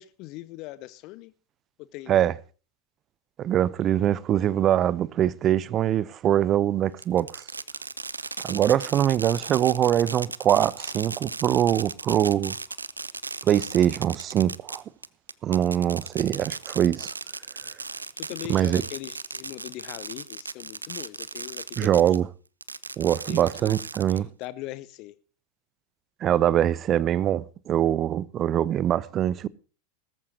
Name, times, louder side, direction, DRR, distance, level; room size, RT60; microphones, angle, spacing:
voice 1, 0.0-1.3 1.8-2.3 18.2-22.0 23.3-23.8 24.4-25.2, left 17 dB, 40° left, 0.7 m, -40 dB
voice 2, 3.4-7.4 8.4-12.6 13.4-14.8 15.4-17.1 18.5-18.8 21.8-22.3 23.0-24.3 26.2-29.5, right 11 dB, 30° right, 0.6 m, -23 dB
Fireworks, 7.0-22.2 22.6-24.4, right 3 dB, 80° right, 0.6 m, -36 dB
18.5 x 14.5 x 2.8 m
figure-of-eight pair, 90°, 0 cm